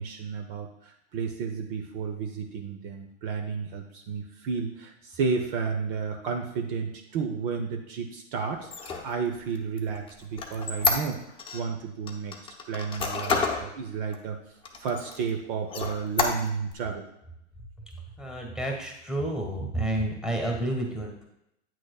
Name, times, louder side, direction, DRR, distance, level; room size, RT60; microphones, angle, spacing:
voice 1, 0.0-12.4 12.7-14.4 14.8-17.1, right 5 dB, 50° right, 4 dB, 0.8 m, -32 dB
Squeak, 8.6-11.6 12.1-13.7 14.1-14.2 14.6-15.3 15.7-16.7, left 4 dB, 15° left, 0.9 m, -29 dB
voice 2, 18.2-21.2, right 1 dB, ahead, 1 dB, 1.5 m, -30 dB
9.0 x 6.2 x 2.3 m, 0.80 s
hypercardioid pair, 110°, 35 cm